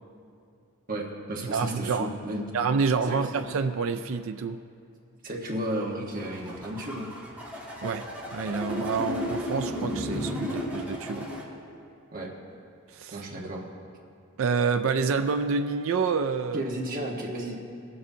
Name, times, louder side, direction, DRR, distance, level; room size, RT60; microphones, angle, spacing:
voice 1, 0.9-2.5 3.1-3.2 5.2-7.1 12.1-12.3 13.1-13.7 16.5-17.6, right 1 dB, 40° right, -1 dB, 1.3 m, -33 dB
voice 2, 1.5-2.1 2.5-4.6 7.8-8.1 8.3-11.3 12.9-13.2 14.4-16.6, right 5 dB, 70° right, 8 dB, 0.4 m, -27 dB
sound 1, 6.2-11.4, equal, 5° right, 1.9 m, -33 dB
22.0 x 7.7 x 2.7 m, 2.5 s
head